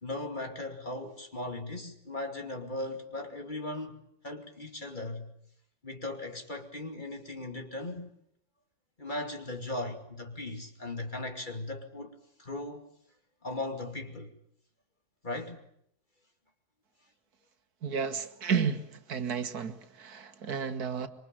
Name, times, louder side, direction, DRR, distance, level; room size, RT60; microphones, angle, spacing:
voice 1, 0.0-5.3 5.8-8.1 9.0-12.1 12.4-12.9 13.4-14.3 15.2-15.6, left 2 dB, 30° left, 2.7 m, -38 dB
voice 2, 17.8-18.8 19.1-21.1, right 6 dB, 75° right, 2.0 m, -32 dB
26.0 x 23.5 x 8.9 m
omnidirectional pair, 1.6 m